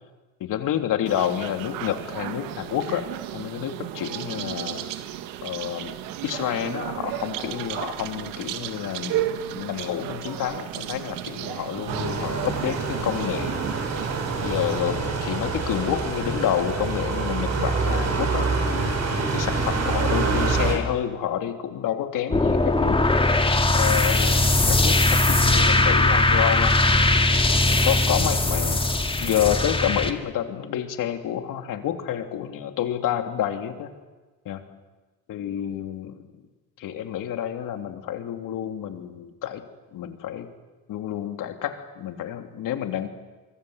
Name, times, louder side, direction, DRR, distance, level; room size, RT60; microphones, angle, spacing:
voice 1, 0.4-3.0 3.3-4.9 5.4-5.9 6.2-13.6 14.4-18.9 19.3-23.0 23.7-26.8 27.7-28.8 29.2-33.9 34.4-34.6 35.3-36.2 36.8-39.6 39.9-40.5 40.9-43.1, left 10 dB, 70° left, 6 dB, 3.1 m, -29 dB
sound 1, 1.1-14.8, right 12 dB, 90° right, 1.8 m, -33 dB
sound 2, 11.9-20.8, right 4 dB, 50° right, 7.1 m, -26 dB
sound 3, 22.3-30.1, left 2 dB, 15° left, 2.5 m, -20 dB
26.5 x 24.0 x 8.1 m, 1.2 s
cardioid pair, 85°, 33 cm